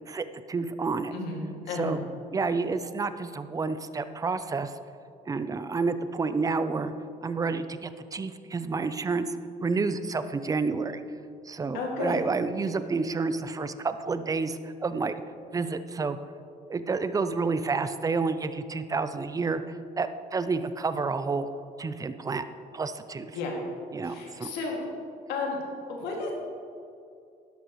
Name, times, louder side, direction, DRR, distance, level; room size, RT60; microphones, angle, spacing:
voice 1, 0.1-1.1 1.7-2.0 2.3-4.7 5.3-6.9 7.2-11.0 11.5-15.1 15.5-16.2 16.7-19.6 20.0-21.5 21.8-22.4 22.7-23.3 23.9-24.5, right 4 dB, 20° right, 11 dB, 0.5 m, -29 dB
voice 2, 1.1-2.0 11.7-12.2 23.3-23.5 24.0-24.8 25.3-25.6 25.9-26.3, left 4 dB, 90° left, -1 dB, 2.3 m, -32 dB
12.0 x 11.0 x 3.1 m, 2.5 s
cardioid pair, 110°, 17 cm